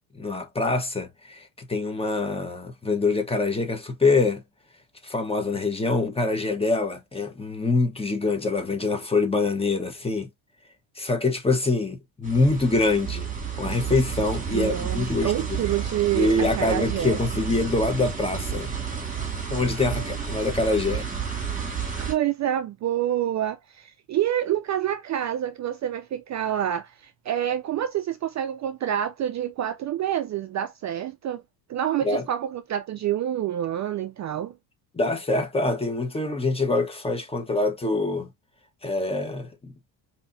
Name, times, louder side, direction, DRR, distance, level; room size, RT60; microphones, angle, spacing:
voice 1, 0.1-4.4 5.0-10.3 11.0-13.3 13.6-15.7 16.1-18.7 19.5-21.1 32.0-32.2 34.9-38.3 38.8-39.7, left 3 dB, 15° left, 1.0 m, -25 dB
Rain-Thunder-Airplane-Car, 12.2-22.1, right 7 dB, 20° right, 1.7 m, -31 dB
voice 2, 14.5-17.2 22.0-31.4 31.7-34.5, right 11 dB, 40° right, 0.4 m, -27 dB
5.1 x 2.9 x 2.6 m
cardioid pair, 130°, 44 cm